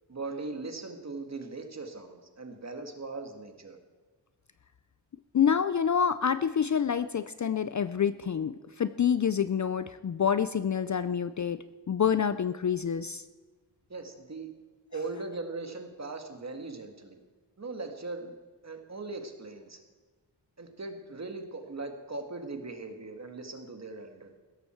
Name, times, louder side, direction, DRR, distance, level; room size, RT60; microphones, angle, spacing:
voice 1, 0.1-3.8 13.9-14.5 14.9-17.2 17.6-18.3 18.6-19.8 20.6-24.3, right 3 dB, 35° right, 5 dB, 1.8 m, -39 dB
voice 2, 5.3-13.2, left 7 dB, 45° left, 13 dB, 0.4 m, -27 dB
16.5 x 13.5 x 4.5 m, 1.3 s
wide cardioid pair, 145°, 44 cm